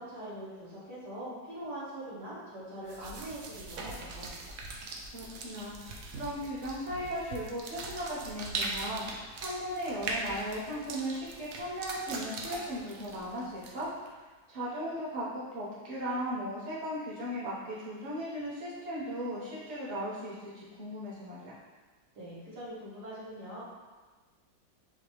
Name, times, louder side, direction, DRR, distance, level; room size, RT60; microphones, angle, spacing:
voice 1, 0.0-4.3 22.1-23.6, right 1 dB, 65° right, -8 dB, 1.8 m, -42 dB
sound 1, 2.9-14.1, right 3 dB, 85° right, 0.6 m, -41 dB
voice 2, 5.1-13.9 14.5-21.5, equal, 30° right, -9 dB, 1.1 m, -37 dB
6.9 x 2.5 x 3.1 m, 1.3 s
omnidirectional pair, 2.0 m